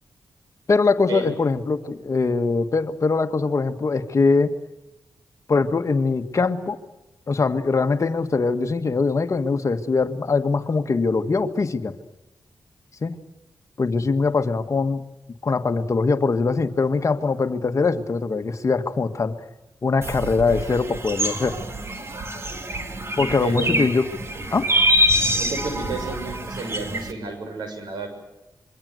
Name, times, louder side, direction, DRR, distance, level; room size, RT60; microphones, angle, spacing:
voice 1, 0.7-4.5 5.5-6.8 7.3-12.0 13.0-13.2 13.8-15.0 15.4-19.3 19.8-21.6 23.2-24.1 24.5-24.7, left 4 dB, 45° left, 8 dB, 1.7 m, -22 dB
sound 1, 20.0-27.1, equal, 35° right, 2.7 m, -25 dB
voice 2, 23.2-23.8 25.3-28.1, right 2 dB, 85° right, 6 dB, 6.8 m, -31 dB
26.5 x 23.5 x 7.9 m, 0.97 s
cardioid pair, 85°, 7 cm